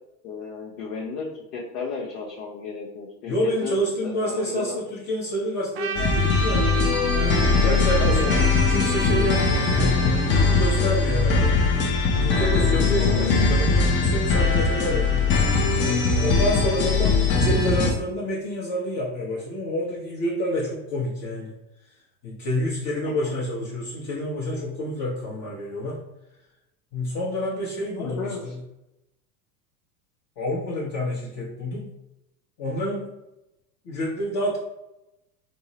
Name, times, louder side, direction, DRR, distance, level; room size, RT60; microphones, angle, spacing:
voice 1, 0.2-1.3 1.5-3.3 3.6-4.8 8.0-8.4 13.0-13.5 23.0-23.3 27.9-28.5, left 4 dB, 70° left, -3 dB, 0.8 m, -33 dB
voice 2, 3.3-6.7 7.1-11.5 12.2-15.1 15.7-21.6 22.2-26.0 26.9-28.6 30.4-31.9 32.6-33.1 33.8-34.6, equal, 40° left, -6 dB, 0.9 m, -28 dB
Trumpet, 5.7-10.4, right 4 dB, 30° right, 0.4 m, -31 dB
sound 1, 6.0-17.9, left 4 dB, 25° left, 0.5 m, -21 dB
3.6 x 2.0 x 2.8 m, 0.91 s
hypercardioid pair, 95°, 47 cm